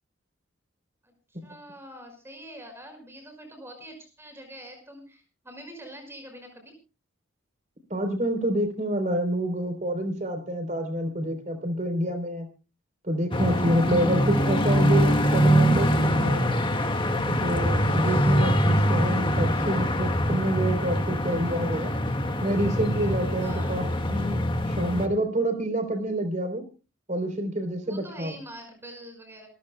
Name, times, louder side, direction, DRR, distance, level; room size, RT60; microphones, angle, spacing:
voice 1, 1.0-6.7 18.0-18.7 23.4-23.9 27.8-29.5, right 1 dB, 10° right, 5 dB, 5.5 m, -45 dB
voice 2, 7.9-12.5 13.0-16.5 17.4-21.9 22.4-23.8 24.1-24.4 24.7-26.6 27.1-28.3, right 1 dB, 40° right, 8 dB, 3.6 m, -27 dB
sound 1, 13.3-25.1, equal, 25° left, 1.8 m, -24 dB
26.5 x 15.0 x 2.2 m, 0.32 s
head